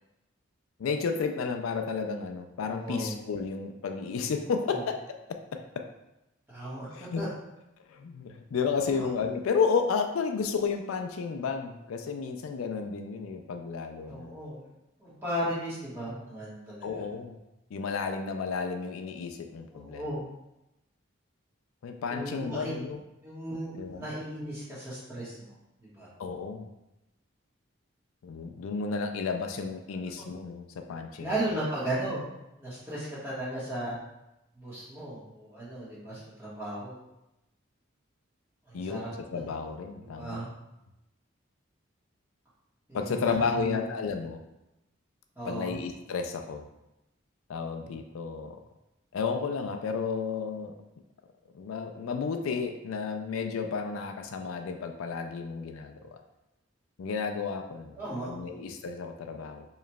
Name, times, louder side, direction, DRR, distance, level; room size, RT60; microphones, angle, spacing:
voice 1, 0.8-5.0 5.3-5.9 6.9-7.2 7.9-14.4 16.8-17.4 17.7-20.0 21.8-23.0 23.7-24.1 26.2-26.7 28.2-31.3 38.7-39.1 39.3-40.5 42.9-44.4 45.4-46.7 47.5-48.6 49.1-50.7 51.5-56.2 57.0-58.0 58.2-59.7, left 5 dB, 85° left, 5 dB, 0.4 m, -32 dB
voice 2, 2.6-3.1 4.7-4.8 6.5-6.9 7.1-7.3 8.9-9.1 14.0-14.7 15.0-17.0 19.7-20.2 22.1-22.7 23.2-26.1 30.2-30.3 31.2-32.2 32.6-34.0 34.5-37.0 38.7-39.5 40.0-40.5 42.9-43.9 45.4-45.8 58.0-58.6, right 1 dB, 10° right, -10 dB, 1.4 m, -36 dB
4.6 x 3.0 x 2.3 m, 0.92 s
head